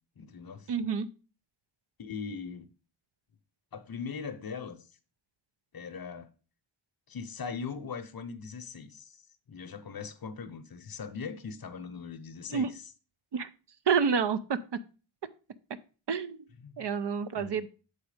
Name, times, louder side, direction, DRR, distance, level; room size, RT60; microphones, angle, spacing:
voice 1, 0.2-0.7 2.0-2.7 3.7-4.8 5.7-6.3 7.1-9.2 9.5-12.9 16.6-16.9 17.4-17.6, left 5 dB, 45° left, 0.8 m, -40 dB
voice 2, 0.7-1.1 12.5-12.7 13.3-13.5 13.9-14.6 16.1-16.4 16.8-17.7, right 6 dB, 55° right, 0.6 m, -28 dB
6.9 x 4.2 x 4.9 m
wide cardioid pair, 95°, 50 cm